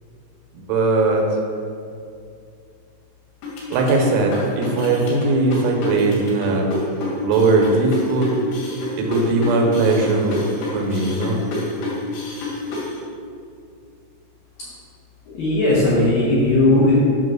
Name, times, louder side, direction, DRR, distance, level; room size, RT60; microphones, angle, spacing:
voice 1, 0.5-1.3 3.7-6.7 7.2-8.3 9.0-10.4 10.7-11.4, right 3 dB, 85° right, 0 dB, 3.3 m, -19 dB
sound 1, 3.4-12.9, left 3 dB, 90° left, 4.1 m, -29 dB
voice 2, 15.3-17.0, left 2 dB, 75° left, -8 dB, 2.1 m, -17 dB
8.4 x 3.0 x 6.2 m, 2.4 s
omnidirectional pair, 5.3 m